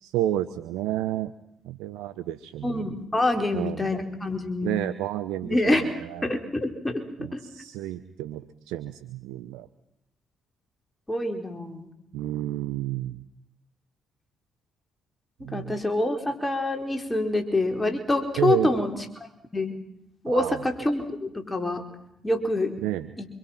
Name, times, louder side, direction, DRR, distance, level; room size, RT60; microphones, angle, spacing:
voice 1, 0.0-1.3 1.6-3.0 3.5-3.9 4.6-6.3 7.2-9.7 12.1-13.2 15.4-15.8 18.4-18.8 20.3-20.6 22.8-23.1, right 13 dB, 80° right, 11 dB, 0.9 m, -31 dB
voice 2, 2.6-4.7 5.4-5.8 6.2-7.0 7.3-7.4 11.1-11.9 15.5-18.9 19.5-19.7 20.2-21.8 22.2-22.7 23.2-23.3, left 2 dB, 15° left, 5 dB, 4.4 m, -26 dB
26.5 x 24.5 x 5.9 m, 0.79 s
hypercardioid pair, 50°, 0 cm